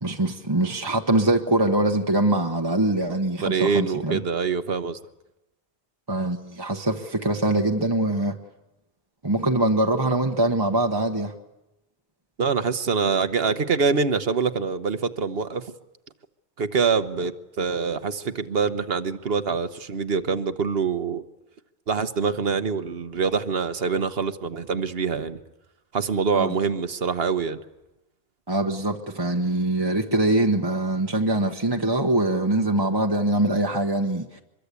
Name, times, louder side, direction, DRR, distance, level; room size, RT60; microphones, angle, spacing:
voice 1, 0.0-4.2 6.1-8.4 9.2-11.3 26.3-26.6 28.5-34.4, right 1 dB, 25° right, 1.1 m, -23 dB
voice 2, 3.4-5.0 12.4-15.7 16.6-21.2 21.9-25.4 25.9-27.6, right 5 dB, 65° right, 1.3 m, -25 dB
24.5 x 22.0 x 8.3 m
omnidirectional pair, 1.1 m